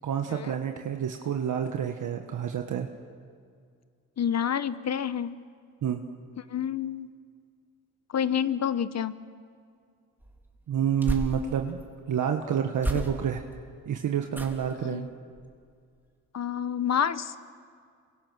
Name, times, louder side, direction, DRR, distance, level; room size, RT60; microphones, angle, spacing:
voice 1, 0.0-2.9 5.8-6.0 10.7-11.8 12.1-13.4 13.9-15.1, right 8 dB, 65° right, 4 dB, 1.5 m, -28 dB
voice 2, 4.2-5.4 6.5-7.1 8.1-9.1 14.8-15.1 16.3-17.4, left 8 dB, 55° left, 14 dB, 1.1 m, -28 dB
sound 1, 10.2-11.9 12.8-13.5 14.3-14.8 15.3-15.6 15.9-16.0, equal, 5° right, 2.9 m, -35 dB
27.5 x 24.0 x 6.3 m, 2.2 s
cardioid pair, 75°, 33 cm